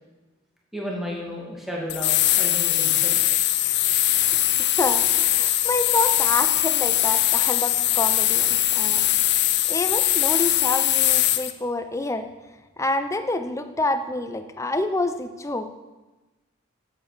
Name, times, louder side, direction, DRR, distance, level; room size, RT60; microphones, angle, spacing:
voice 1, 0.7-3.7 4.1-4.4, equal, ahead, -4 dB, 2.3 m, -34 dB
sound 1, 1.9-11.5, left 14 dB, 55° left, 0.6 m, -21 dB
voice 2, 4.3-9.1 9.7-12.3 12.8-15.7, left 2 dB, 15° left, 8 dB, 0.7 m, -28 dB
10.5 x 8.1 x 6.8 m, 1.1 s
head